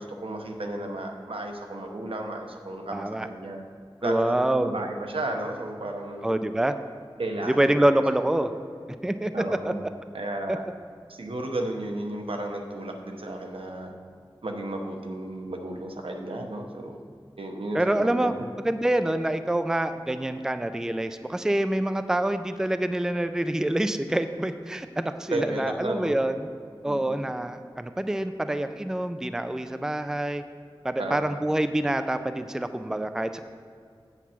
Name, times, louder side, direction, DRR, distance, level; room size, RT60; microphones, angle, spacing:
voice 1, 0.0-3.6 4.0-6.3 7.2-7.8 9.3-9.8 10.1-10.6 11.1-13.9 14.4-17.0 17.4-18.3 25.3-26.1 26.8-27.2 31.0-31.4, right 1 dB, 85° right, 2 dB, 0.9 m, -33 dB
voice 2, 2.9-3.3 4.0-4.7 6.2-6.7 7.5-8.5 9.0-9.3 9.6-9.7 17.7-18.3 18.6-26.3 26.8-30.4 30.8-33.4, right 1 dB, 5° right, 10 dB, 0.3 m, -26 dB
8.0 x 4.4 x 7.2 m, 2.2 s
wide cardioid pair, 60°, 9 cm